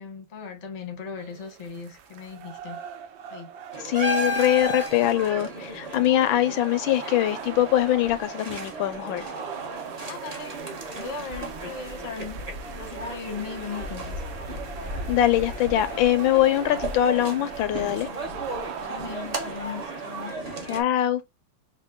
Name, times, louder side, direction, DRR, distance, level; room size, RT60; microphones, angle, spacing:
voice 1, 0.0-2.8 3.3-3.5 10.0-10.6 10.9-12.4 12.8-14.2 18.8-20.3, left 5 dB, 30° left, 0.7 m, -38 dB
sound 1, 1.2-20.3, right 7 dB, 75° right, 1.4 m, -42 dB
sound 2, 3.7-20.8, right 1 dB, 30° right, 0.7 m, -34 dB
voice 2, 3.8-9.2 15.1-18.1 20.7-21.2, left 12 dB, 90° left, 1.4 m, -23 dB
5.3 x 2.1 x 3.7 m
omnidirectional pair, 2.1 m